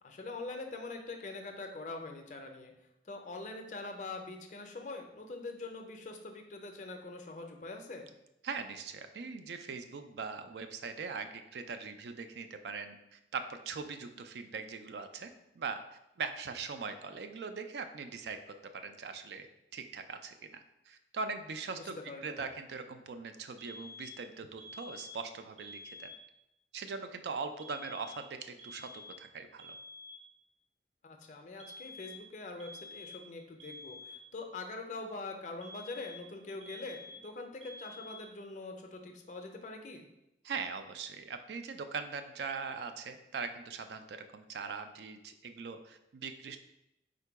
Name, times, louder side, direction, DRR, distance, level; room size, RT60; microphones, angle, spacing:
voice 1, 0.0-2.7 3.0-8.1 21.8-22.4 31.0-40.1, left 3 dB, 45° left, 4 dB, 0.5 m, -43 dB
voice 2, 8.4-15.8 16.2-18.4 18.7-19.5 19.7-22.0 22.2-26.1 26.7-29.8 40.4-46.6, right 5 dB, 70° right, 8 dB, 0.4 m, -41 dB
sound 1, 23.6-24.2 24.6-25.2 25.6-26.2 27.6-28.3 28.6-29.3 29.6-30.3 31.6-32.3 32.6-33.3 33.6-34.3 35.6-36.3 36.6-37.3 37.6-38.3, left 2 dB, 35° right, 0.7 m, -49 dB
3.8 x 2.2 x 4.5 m, 0.85 s
head